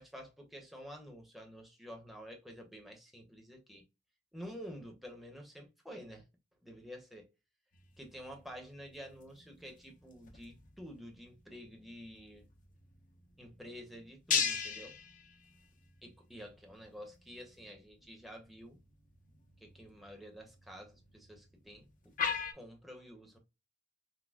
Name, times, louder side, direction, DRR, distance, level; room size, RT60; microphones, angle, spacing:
voice 1, 0.0-3.8 4.3-6.2 6.6-7.3 8.0-12.4 13.4-15.0 16.0-18.8 19.6-22.1 22.5-23.4, equal, ahead, 0.9 m, -50 dB
sound 1, 7.7-22.5, left 6 dB, 45° left, 0.7 m, -42 dB
6.2 x 2.1 x 2.3 m
head